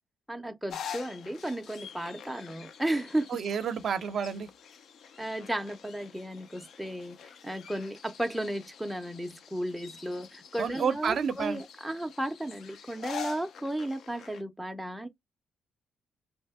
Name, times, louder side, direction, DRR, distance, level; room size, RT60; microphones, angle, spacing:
voice 1, 0.3-3.3 5.2-7.2 7.4-15.1, right 1 dB, ahead, 0.5 m, -34 dB
sound 1, 0.7-14.4, left 8 dB, 65° left, 0.4 m, -46 dB
voice 2, 3.3-4.5 10.6-11.6, right 7 dB, 55° right, 0.5 m, -30 dB
2.7 x 2.6 x 3.4 m
cardioid pair, 125°, 0 cm